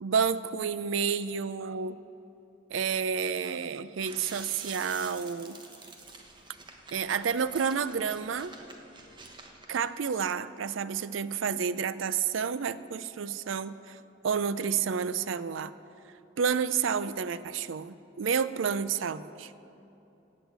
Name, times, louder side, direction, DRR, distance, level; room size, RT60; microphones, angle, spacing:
voice 1, 0.0-2.0 2.7-5.6 6.9-8.5 9.7-14.0 14.2-15.7 16.4-19.5, right 6 dB, 80° right, 15 dB, 0.5 m, -30 dB
sound 1, 4.0-9.8, right 3 dB, 25° right, 1.0 m, -47 dB
16.5 x 6.4 x 8.0 m, 2.9 s
head